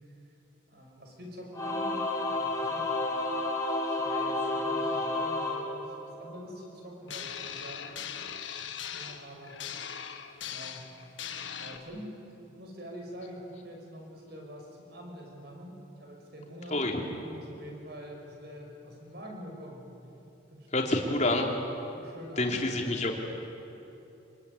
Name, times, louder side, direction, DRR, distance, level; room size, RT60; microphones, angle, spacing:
voice 1, 0.7-3.3 3.8-7.9 8.6-9.6 10.4-12.2 12.6-16.8 17.3-19.9 20.5-20.9 21.9-22.6, equal, 55° right, 1 dB, 6.3 m, -45 dB
Singing / Musical instrument, 1.5-6.4, left 2 dB, 15° left, 3.6 m, -31 dB
sound 1, 7.1-11.8, left 8 dB, 75° left, 1.6 m, -40 dB
voice 2, 16.7-17.0 20.7-21.5 22.4-23.2, left 2 dB, 35° left, 1 dB, 3.1 m, -27 dB
24.5 x 23.5 x 9.9 m, 3.0 s
head